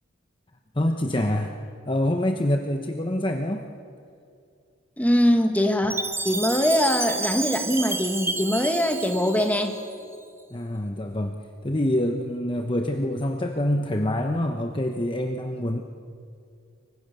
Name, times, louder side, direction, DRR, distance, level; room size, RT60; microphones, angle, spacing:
voice 1, 0.7-1.5 1.8-3.7 10.5-15.8, left 1 dB, 25° left, 4 dB, 1.1 m, -26 dB
voice 2, 5.0-9.8, equal, 5° left, 4 dB, 1.9 m, -22 dB
Chime, 5.9-10.1, right 3 dB, 10° right, 1.1 m, -31 dB
29.0 x 24.0 x 6.9 m, 2.4 s
head